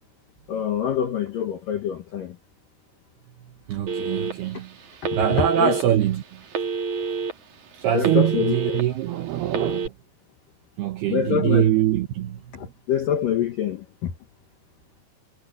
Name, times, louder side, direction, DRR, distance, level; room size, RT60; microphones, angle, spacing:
voice 1, 0.5-2.3 5.3-5.8 7.9-8.9 11.1-11.7 12.5-14.1, left 8 dB, 75° left, 2.0 m, -26 dB
voice 2, 3.7-4.7 5.1-6.2 7.8-9.9 10.8-12.4, right 11 dB, 80° right, 2.3 m, -23 dB
Telephone, 3.9-4.6 5.0-5.8 6.5-7.3 7.7-8.8 9.5-9.9, right 5 dB, 45° right, 3.0 m, -27 dB
omnidirectional pair, 5.9 m